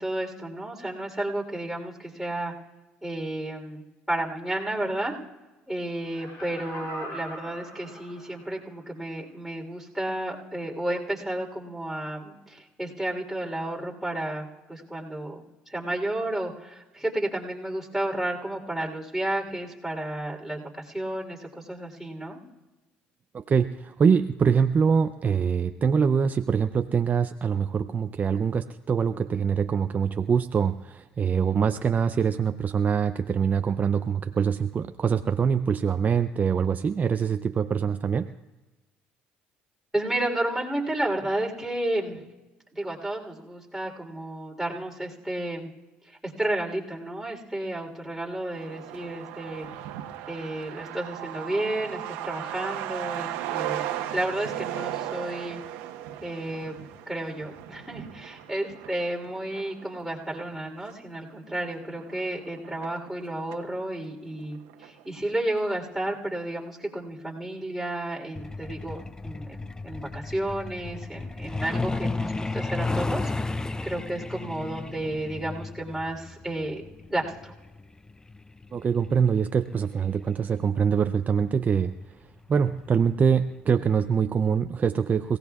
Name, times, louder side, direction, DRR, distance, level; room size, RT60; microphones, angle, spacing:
voice 1, 0.0-2.5 3.0-5.2 5.7-22.4 39.9-42.2 42.7-45.7 46.0-49.7 50.3-55.6 56.2-56.8 57.1-69.5 69.8-76.8 77.1-77.5, right 1 dB, 5° right, -1 dB, 3.5 m, -32 dB
Laughter, 6.0-8.6 9.1-9.2, equal, 65° left, 4.3 m, -41 dB
voice 2, 23.3-38.3 78.7-81.9 82.5-85.4, right 6 dB, 35° right, 8 dB, 0.6 m, -24 dB
Truck, 48.5-63.7 64.0-64.1 64.4-65.3 65.5-65.6 66.0-66.4, right 12 dB, 90° right, 1.1 m, -37 dB
Truck 2, 68.4-80.7 81.9-82.1 82.4-82.6 83.0-83.3 83.6-83.7 84.2-84.3, left 3 dB, 15° left, 0.5 m, -33 dB
28.5 x 17.0 x 2.4 m, 1.1 s
supercardioid pair, 80°, 5 cm